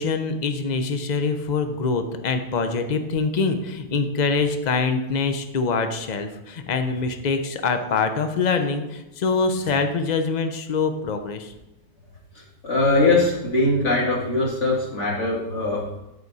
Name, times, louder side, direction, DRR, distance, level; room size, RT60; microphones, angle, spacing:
voice 1, 0.0-11.5, left 4 dB, 60° left, 7 dB, 0.4 m, -24 dB
voice 2, 12.6-15.8, left 2 dB, 45° left, -3 dB, 2.3 m, -21 dB
12.5 x 5.0 x 4.1 m, 0.93 s
omnidirectional pair, 1.8 m